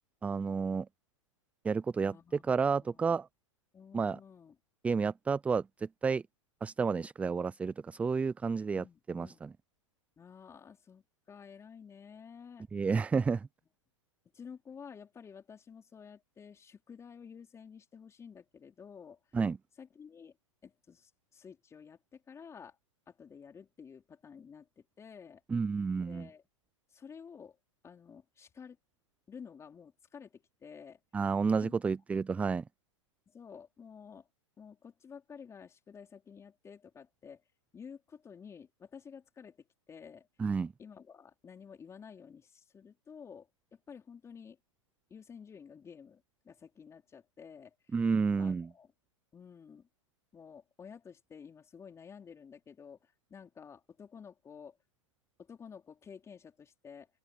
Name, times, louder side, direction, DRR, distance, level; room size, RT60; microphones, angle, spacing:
voice 1, 0.2-0.9 1.6-2.2 2.5-3.3 3.9-4.2 4.8-6.2 6.6-9.5 12.7-13.5 19.3-19.6 25.5-26.3 31.1-32.6 40.4-40.7 47.9-48.7, right 5 dB, 10° right, 0.4 m, -31 dB
voice 2, 2.0-3.2 3.7-4.6 8.7-9.4 10.2-12.7 14.3-19.2 19.8-20.4 20.6-22.8 23.1-25.4 25.9-26.4 26.9-27.6 27.8-28.8 29.3-31.0 31.6-31.8 33.3-34.3 34.6-37.4 37.7-39.6 39.9-40.3 40.8-44.6 45.1-48.0 48.4-48.9 49.3-49.9 50.3-54.8 55.4-57.1, left 6 dB, 15° left, 4.3 m, -51 dB
open air
hypercardioid pair, 120°, 17 cm